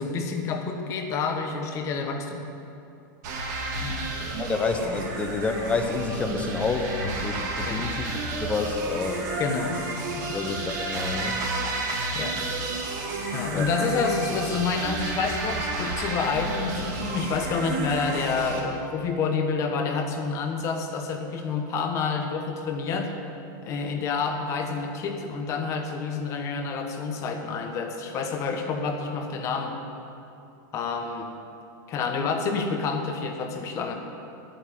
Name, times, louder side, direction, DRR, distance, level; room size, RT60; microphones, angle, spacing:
voice 1, 0.0-2.5 3.8-4.1 7.6-7.9 9.4-9.8 10.2-10.3 12.1-12.4 13.3-23.1 23.6-29.8 30.7-31.3 31.9-34.0, left 4 dB, 25° left, 4 dB, 1.3 m, -28 dB
sound 1, 3.2-18.6, right 2 dB, 55° right, 3.0 m, -31 dB
voice 2, 4.4-9.3 10.3-11.4 13.5-13.7, left 4 dB, 10° left, 5 dB, 1.0 m, -29 dB
9.9 x 9.1 x 10.0 m, 2.6 s
supercardioid pair, 160°, 11 cm